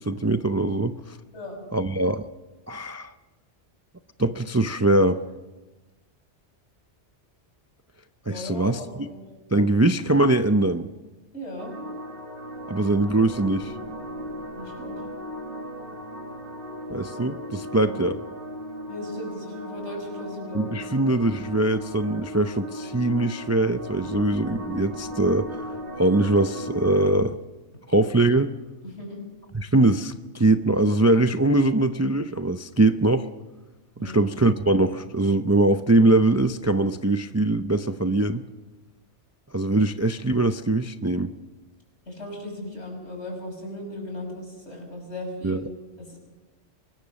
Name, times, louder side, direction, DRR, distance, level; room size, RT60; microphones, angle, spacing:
voice 1, 0.0-1.2 1.7-2.2 2.7-3.1 4.2-5.2 8.3-9.1 9.5-10.9 12.7-13.7 16.9-18.2 20.5-25.5 26.0-27.4 27.9-28.5 29.5-33.3 34.0-38.4 39.5-41.3 45.4-45.6, right 2 dB, 20° right, 9 dB, 0.5 m, -22 dB
voice 2, 8.3-9.2 11.3-11.7 14.6-15.0 17.8-18.0 18.9-21.1 28.8-29.2 34.0-34.2 42.1-45.6 46.0-46.2, left 1 dB, 70° left, 2 dB, 6.6 m, -37 dB
sound 1, 11.6-27.1, equal, 50° right, 2.1 m, -37 dB
24.0 x 21.0 x 6.4 m, 1.1 s
omnidirectional pair, 1.2 m